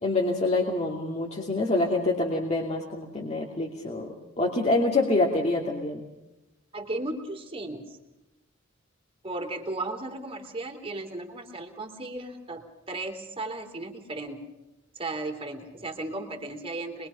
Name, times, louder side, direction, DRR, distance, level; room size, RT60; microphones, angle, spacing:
voice 1, 0.0-6.0, left 2 dB, 35° left, -2 dB, 2.8 m, -26 dB
voice 2, 6.7-8.0 9.2-14.5 14.9-17.1, right 2 dB, 30° right, 4 dB, 3.4 m, -35 dB
26.5 x 22.5 x 5.8 m, 0.99 s
head